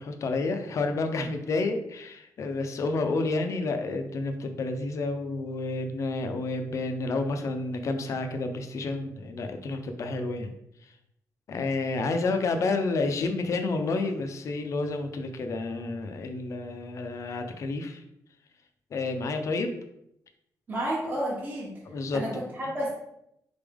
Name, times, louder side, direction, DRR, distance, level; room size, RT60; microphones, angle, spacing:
voice 1, 0.0-10.5 11.5-18.0 18.9-19.7 21.9-22.4, left 3 dB, 50° left, 6 dB, 0.5 m, -30 dB
voice 2, 20.7-21.8 22.1-22.9, right 1 dB, 25° right, -6 dB, 0.9 m, -31 dB
3.9 x 3.4 x 3.5 m, 0.79 s
wide cardioid pair, 170°, 7 cm